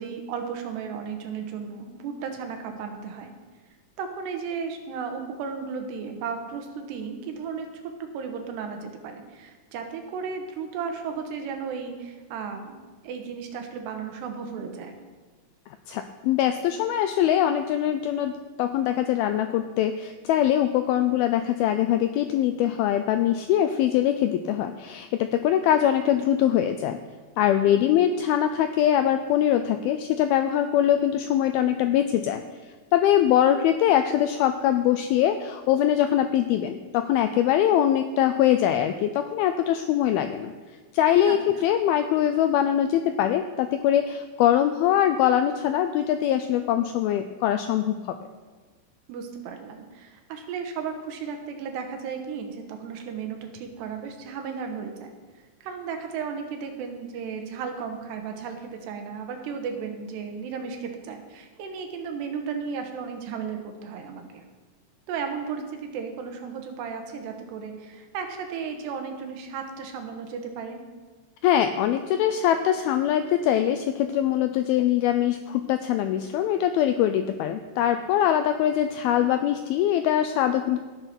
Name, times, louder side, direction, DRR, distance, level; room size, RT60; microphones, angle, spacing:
voice 1, 0.0-3.3 4.0-12.8 13.0-15.0 27.7-28.0 41.2-41.4 49.1-55.1 55.6-64.4 65.1-70.8, right 6 dB, 75° right, 5 dB, 3.3 m, -34 dB
voice 2, 15.9-18.3 18.6-27.0 27.4-32.4 32.9-40.5 40.9-48.2 71.4-80.8, left 10 dB, 85° left, 8 dB, 2.1 m, -23 dB
17.0 x 6.7 x 6.0 m, 1.4 s
omnidirectional pair, 4.9 m